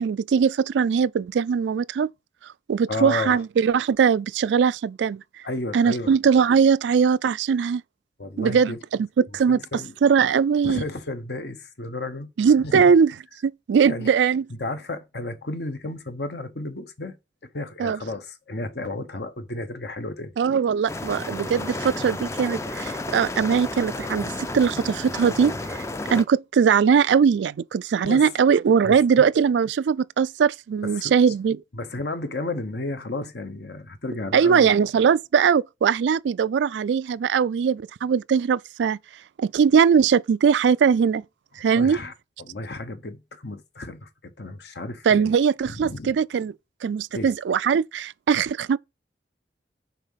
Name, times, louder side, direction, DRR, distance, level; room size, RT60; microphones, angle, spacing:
voice 1, 0.0-2.1 2.7-5.2 5.7-7.8 8.4-9.6 10.0-10.8 12.4-13.1 13.4-14.4 17.8-18.0 20.4-25.8 26.1-31.6 34.3-39.0 39.4-41.2 41.6-42.0 45.1-46.5 46.8-48.8, right 6 dB, 90° right, 0.3 m, -20 dB
voice 2, 2.9-3.4 5.4-6.1 8.2-8.8 9.5-9.9 10.6-12.3 12.6-12.9 13.8-14.1 14.5-20.3 28.0-28.3 28.8-29.0 30.8-31.2 31.7-34.7 41.7-42.1 42.4-45.3 45.7-46.1 47.1-47.3, left 2 dB, 70° left, 1.1 m, -33 dB
sound 1, 20.9-26.2, left 2 dB, 15° left, 0.4 m, -32 dB
6.7 x 4.8 x 5.6 m
head